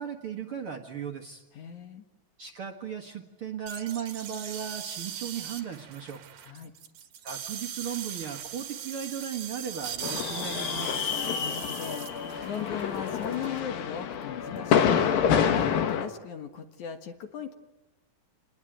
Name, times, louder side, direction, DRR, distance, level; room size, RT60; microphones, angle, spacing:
voice 1, 0.0-1.4 2.4-6.2 7.2-11.0, right 8 dB, 50° right, 4 dB, 1.9 m, -36 dB
voice 2, 1.5-2.0 6.4-6.7 11.4-17.5, left 8 dB, 60° left, 6 dB, 2.8 m, -39 dB
sound 1, 3.7-13.6, right 9 dB, 80° right, 3.6 m, -40 dB
sound 2, 10.0-16.1, left 8 dB, 80° left, 3.3 m, -27 dB
28.0 x 20.5 x 9.2 m, 1.0 s
omnidirectional pair, 4.1 m